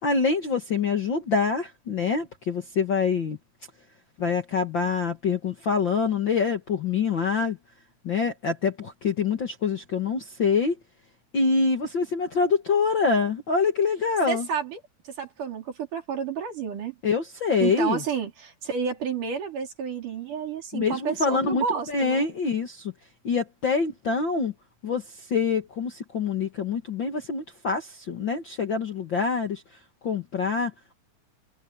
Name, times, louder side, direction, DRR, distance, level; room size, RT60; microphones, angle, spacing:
voice 1, 0.0-3.4 4.2-7.6 8.0-10.8 11.3-14.5 17.0-18.0 20.7-22.9 23.2-24.5 24.8-29.6 30.0-30.7, left 5 dB, 45° left, 1.8 m, -25 dB
voice 2, 14.3-14.8 15.2-16.9 17.6-22.3, right 7 dB, 70° right, 5.2 m, -30 dB
omnidirectional pair, 3.8 m